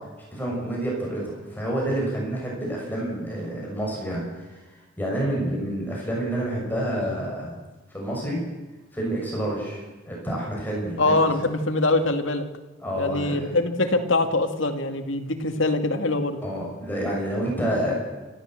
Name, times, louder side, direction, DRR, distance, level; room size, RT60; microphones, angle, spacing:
voice 1, 0.3-4.2 5.0-7.5 7.9-8.4 8.9-11.2 12.8-13.5 16.4-17.9, right 1 dB, 10° left, -3 dB, 6.6 m, -28 dB
voice 2, 11.0-12.4 13.0-16.4, left 2 dB, 80° left, 6 dB, 2.1 m, -23 dB
29.0 x 13.0 x 7.7 m, 1.2 s
head